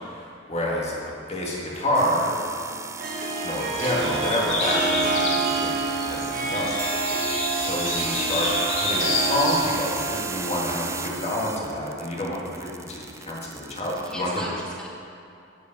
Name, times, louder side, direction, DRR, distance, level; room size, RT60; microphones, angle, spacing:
voice 1, 0.0-1.0 1.3-2.3 3.4-6.7 7.5-8.5 8.8-14.5, left 1 dB, 35° left, -3 dB, 1.8 m, -28 dB
Harp, 1.6-12.0, right 3 dB, 45° right, 1.2 m, -29 dB
sound 1, 1.9-14.1, right 5 dB, 15° right, 0.3 m, -35 dB
sound 2, 3.7-10.2, left 3 dB, 85° left, 1.5 m, -30 dB
voice 2, 6.9-7.3 14.0-14.9, equal, 5° left, -4 dB, 1.5 m, -38 dB
8.3 x 8.1 x 5.3 m, 2.6 s
head